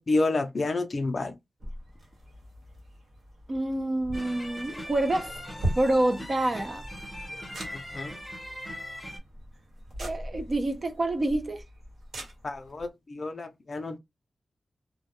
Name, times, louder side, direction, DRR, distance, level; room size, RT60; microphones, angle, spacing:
voice 1, 0.0-1.4 7.7-8.2 12.4-14.0, left 2 dB, 40° left, 0.4 m, -29 dB
sound 1, 1.6-12.9, right 1 dB, 65° right, 1.1 m, -40 dB
voice 2, 3.5-5.3 5.8-6.8 10.0-11.6, right 1 dB, 40° right, 0.4 m, -27 dB
sound 2, 4.1-9.2, equal, 5° left, 0.6 m, -40 dB
2.1 x 2.1 x 2.8 m
wide cardioid pair, 150°, 0 cm